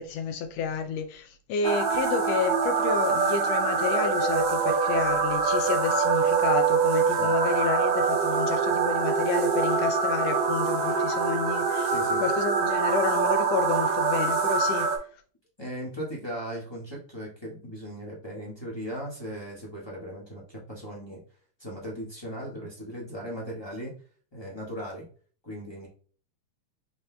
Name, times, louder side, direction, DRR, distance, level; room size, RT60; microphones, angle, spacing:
voice 1, 0.0-11.9 12.2-15.0, left 6 dB, 80° left, 1.6 m, -30 dB
sound 1, 1.6-15.0, right 5 dB, 70° right, 1.1 m, -24 dB
voice 2, 11.9-12.2 15.6-21.2 21.6-23.9 24.3-25.0 25.4-25.9, equal, 35° left, 0.4 m, -38 dB
4.7 x 4.3 x 2.2 m
omnidirectional pair, 3.3 m